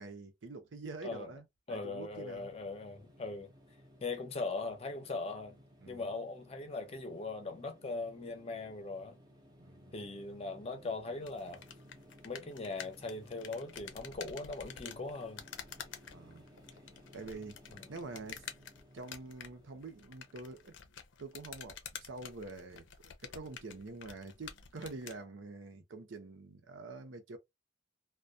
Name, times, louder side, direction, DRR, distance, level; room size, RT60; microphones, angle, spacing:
voice 1, 0.0-2.5 5.8-6.1 9.6-9.9 16.1-16.4 17.1-18.5 18.9-20.8 21.2-27.4, right 3 dB, 80° right, 0.6 m, -46 dB
voice 2, 1.7-3.5 4.0-5.6 5.9-9.2 9.9-11.6 12.2-15.4 17.7-17.8, left 3 dB, 30° left, 0.5 m, -40 dB
sound 1, 2.1-20.8, equal, 20° right, 0.6 m, -59 dB
sound 2, 11.2-25.2, left 8 dB, 75° left, 0.5 m, -50 dB
2.2 x 2.2 x 2.6 m
head